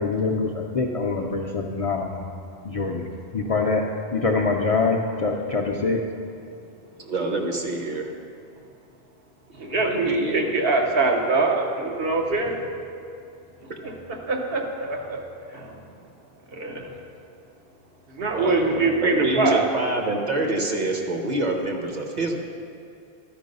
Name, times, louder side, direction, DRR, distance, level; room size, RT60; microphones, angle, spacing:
voice 1, 0.0-2.3 2.6-3.1 3.3-6.0, left 4 dB, 45° left, 0 dB, 0.5 m, -24 dB
voice 2, 7.0-8.1 9.7-10.4 13.7-13.8 18.3-22.4, right 2 dB, 45° right, 2 dB, 1.0 m, -27 dB
voice 3, 9.7-12.5 14.3-15.2 16.6-16.8 18.2-19.6, right 3 dB, 70° right, 1 dB, 1.1 m, -23 dB
12.0 x 4.7 x 5.3 m, 2.5 s
omnidirectional pair, 1.0 m